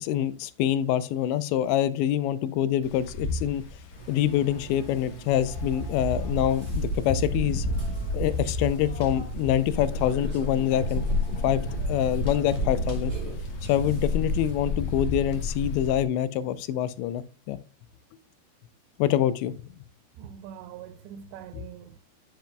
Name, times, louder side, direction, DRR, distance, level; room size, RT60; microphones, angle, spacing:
voice 1, 0.0-3.6 4.1-7.7 8.1-11.0 11.4-11.6 11.9-13.1 13.7-17.6 19.0-19.5, left 11 dB, 85° left, 2.9 m, -25 dB
Wind, 2.8-16.0, left 1 dB, 65° left, 2.5 m, -34 dB
Burping eructation, 3.9-14.5, right 6 dB, 25° right, 3.1 m, -44 dB
sound 1, 9.6-16.0, left 2 dB, 45° left, 1.7 m, -30 dB
voice 2, 20.2-22.0, right 9 dB, 85° right, 2.7 m, -43 dB
10.5 x 7.0 x 2.2 m
omnidirectional pair, 5.0 m